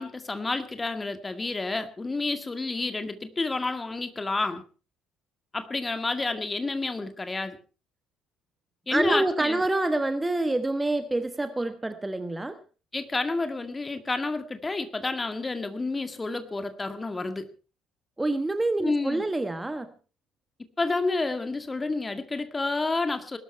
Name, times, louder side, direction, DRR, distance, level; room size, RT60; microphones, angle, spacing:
voice 1, 0.0-4.6 5.5-7.6 8.9-9.6 12.9-17.5 18.8-19.2 20.8-23.4, left 3 dB, 20° left, 9 dB, 2.0 m, -29 dB
voice 2, 8.9-12.6 18.2-19.9, right 2 dB, 15° right, 11 dB, 1.2 m, -27 dB
20.0 x 12.5 x 4.5 m, 0.36 s
figure-of-eight pair, 50°, 0 cm